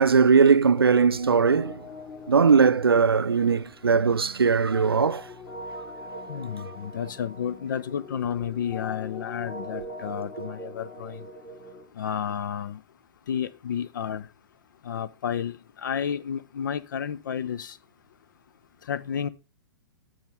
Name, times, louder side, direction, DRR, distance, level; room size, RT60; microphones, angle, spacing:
voice 1, 0.0-1.8 2.3-5.3, right 5 dB, 75° right, 0.4 m, -20 dB
sound 1, 0.9-11.9, left 2 dB, 30° left, 2.3 m, -42 dB
voice 2, 6.3-11.2 12.0-12.8 13.3-14.3 14.8-17.8 18.9-19.3, left 8 dB, 55° left, 0.5 m, -31 dB
10.0 x 6.3 x 3.4 m
figure-of-eight pair, 105°, 12 cm